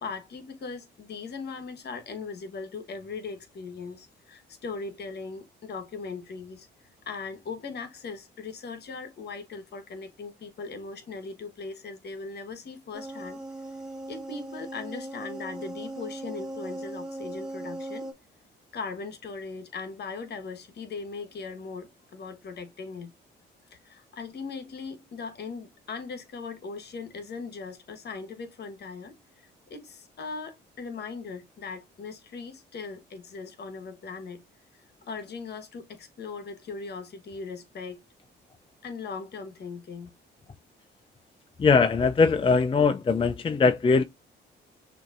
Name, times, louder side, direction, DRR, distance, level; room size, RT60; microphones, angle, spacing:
voice 1, 0.0-6.7 7.0-13.4 14.1-18.1 18.7-23.1 23.7-29.1 29.7-34.4 35.0-38.0 38.8-40.1, left 4 dB, 55° left, 1.2 m, -39 dB
sound 1, 12.9-18.1, right 1 dB, 5° right, 1.6 m, -38 dB
voice 2, 41.6-44.0, left 4 dB, 25° left, 0.5 m, -21 dB
6.2 x 2.7 x 2.5 m
cardioid pair, 90°, 20 cm